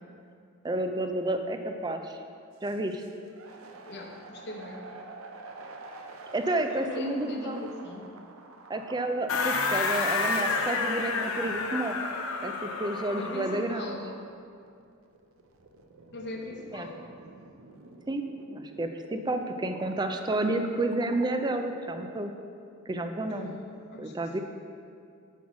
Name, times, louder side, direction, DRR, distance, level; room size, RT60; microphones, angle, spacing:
voice 1, 0.6-2.2 2.6-3.0 6.3-7.6 8.7-12.0 12.4-14.0 16.7-16.9 18.1-22.3 22.9-23.5 24.0-24.4, right 2 dB, 20° right, 6 dB, 0.4 m, -30 dB
sound 1, 2.5-11.9 12.6-12.7 14.3-21.8, right 1 dB, 75° right, 0.6 m, -46 dB
voice 2, 3.9-4.9 6.8-8.1 13.2-14.1 16.1-17.1 23.3-24.2, left 2 dB, 55° left, 2 dB, 0.9 m, -40 dB
sound 2, 9.3-13.7, left 4 dB, 85° left, 0.7 m, -30 dB
6.2 x 5.6 x 6.0 m, 2.4 s
head